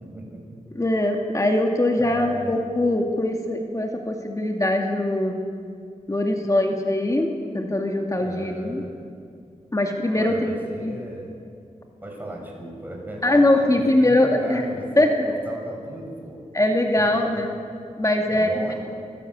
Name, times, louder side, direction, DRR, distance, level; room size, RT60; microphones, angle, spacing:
voice 1, 0.1-0.6 1.9-2.5 8.2-8.9 10.1-11.3 12.0-16.4 17.0-17.2 18.3-18.8, right 1 dB, 15° right, -1 dB, 6.8 m, -36 dB
voice 2, 0.8-5.3 6.1-7.3 7.5-8.8 9.7-11.0 13.2-14.6 15.0-15.3 16.5-17.5 18.0-18.7, left 1 dB, 25° left, 2 dB, 2.2 m, -22 dB
25.0 x 16.0 x 8.2 m, 2.3 s
wide cardioid pair, 90°, 13 cm